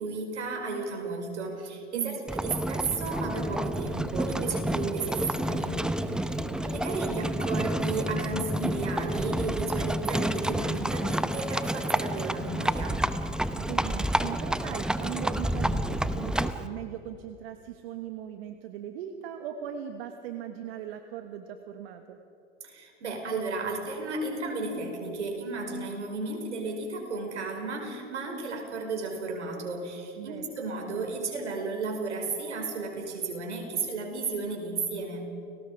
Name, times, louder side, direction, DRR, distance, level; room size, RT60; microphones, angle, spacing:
voice 1, 0.0-6.3 6.6-13.0 22.6-35.3, right 3 dB, 85° right, 3 dB, 5.4 m, -33 dB
Livestock farm animals working animals, 2.3-16.7, right 1 dB, ahead, 0.8 m, -29 dB
voice 2, 13.5-22.2 30.2-30.4, right 10 dB, 60° right, 6 dB, 1.5 m, -39 dB
30.0 x 20.0 x 4.9 m, 2.9 s
hypercardioid pair, 100°, 34 cm